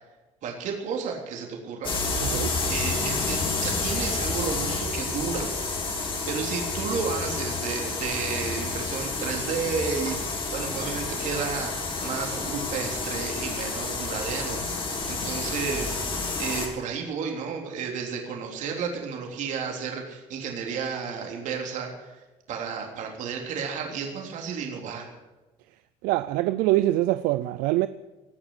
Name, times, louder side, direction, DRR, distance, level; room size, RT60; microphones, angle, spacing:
voice 1, 0.4-1.9 2.7-5.5 6.2-16.0 16.4-22.2 22.5-25.1, right 6 dB, 55° right, 3.4 m, -32 dB
sound 1, 1.8-16.7, left 3 dB, 35° left, 3.8 m, -30 dB
voice 2, 2.2-2.5 26.0-27.9, right 16 dB, 75° right, 0.5 m, -24 dB
18.0 x 7.1 x 9.7 m
cardioid pair, 105°, 15 cm